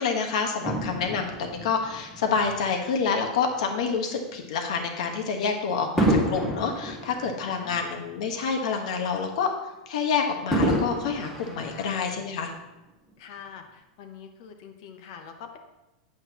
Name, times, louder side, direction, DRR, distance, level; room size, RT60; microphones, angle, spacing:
voice 1, 0.0-9.5 9.9-12.5, left 5 dB, 65° left, 4 dB, 1.3 m, -28 dB
Fireworks, 0.6-3.2 3.9-4.1 6.0-8.5 8.8-8.9 10.5-12.4 13.1-13.2, right 1 dB, ahead, 1.0 m, -29 dB
voice 2, 7.4-8.0 11.6-12.3 13.2-15.6, left 7 dB, 50° left, 6 dB, 1.0 m, -45 dB
9.1 x 7.8 x 3.0 m, 1.0 s
supercardioid pair, 170°, 4 cm